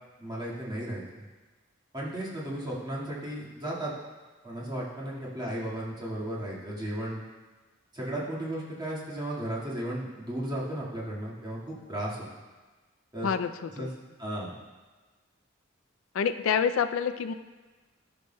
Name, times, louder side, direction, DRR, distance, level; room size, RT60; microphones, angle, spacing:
voice 1, 0.2-1.2 1.9-3.9 4.4-7.2 7.9-12.2 13.1-13.3 13.8-13.9 14.2-14.5, right 1 dB, 20° right, -6 dB, 1.8 m, -35 dB
voice 2, 13.2-13.9 16.1-17.3, left 7 dB, 80° left, 10 dB, 0.4 m, -27 dB
13.0 x 6.0 x 2.2 m, 1.3 s
head